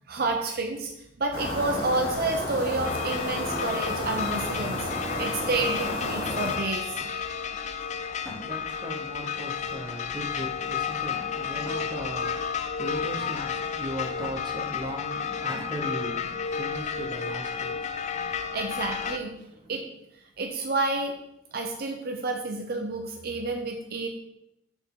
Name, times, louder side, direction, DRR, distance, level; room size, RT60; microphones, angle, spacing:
voice 1, 0.1-0.9 1.2-7.0 18.5-19.3 19.7-19.8 20.4-21.1 21.5-24.1, right 2 dB, 55° right, 0.7 m, -29 dB
sound 1, 1.3-6.6, left 1 dB, 60° left, 2.5 m, -32 dB
sound 2, 2.8-19.2, left 6 dB, 40° left, 0.4 m, -32 dB
sound 3, 2.8-3.7 4.2-4.8 5.2-5.8 6.2-6.4 6.9-7.1 8.1-8.7 9.8-9.9 10.9-11.9 12.3-12.4 13.1-13.5 14.0-14.3 14.9-15.0 15.2-15.7, left 1 dB, 10° left, 1.5 m, -44 dB
voice 2, 7.7-18.6 19.4-19.7, equal, 25° right, 1.0 m, -38 dB
6.5 x 6.1 x 3.8 m
head